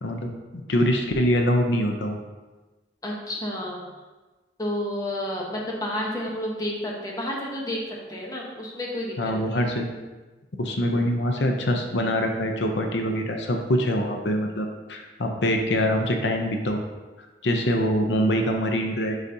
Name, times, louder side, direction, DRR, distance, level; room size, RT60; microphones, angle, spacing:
voice 1, 0.7-2.2 9.2-9.9 10.6-16.8 17.4-19.1, equal, 85° left, 3 dB, 0.7 m, -24 dB
voice 2, 3.0-3.9 4.6-9.6, left 1 dB, 20° left, -2 dB, 1.0 m, -31 dB
9.8 x 4.0 x 2.8 m, 1.2 s
head